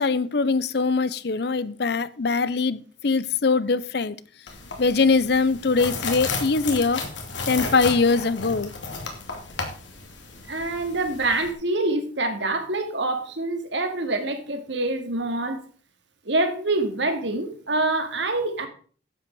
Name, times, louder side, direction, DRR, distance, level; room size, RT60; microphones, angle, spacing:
voice 1, 0.0-4.2 4.8-7.0 7.5-8.7, left 4 dB, 60° left, 0.6 m, -22 dB
sound 1, 4.5-11.5, left 4 dB, 80° left, 2.8 m, -33 dB
voice 2, 10.5-15.6 16.3-18.7, right 2 dB, 75° right, 2.2 m, -26 dB
11.5 x 8.3 x 4.7 m
head